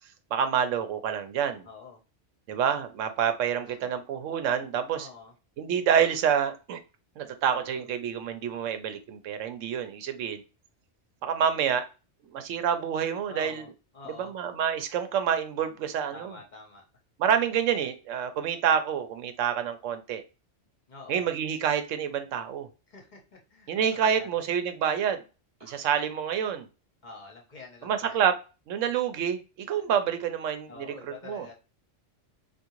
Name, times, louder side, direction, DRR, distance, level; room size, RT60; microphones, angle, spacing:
voice 1, 0.3-1.7 2.5-5.1 5.6-6.8 7.2-10.4 11.2-11.9 12.3-13.7 14.2-16.3 17.2-20.2 21.1-22.7 23.7-25.2 25.6-26.7 27.8-28.3 28.7-30.9 31.2-31.5, right 8 dB, 85° right, 8 dB, 1.0 m, -27 dB
voice 2, 1.6-2.0 3.6-3.9 4.9-5.3 7.6-7.9 13.3-13.7 13.9-14.3 16.1-16.8 20.9-21.2 22.9-24.3 25.6-25.8 27.0-28.2 29.8-29.9 30.7-31.5, left 4 dB, 45° left, 1 dB, 0.8 m, -47 dB
3.6 x 2.4 x 2.9 m, 0.31 s
omnidirectional pair, 1.3 m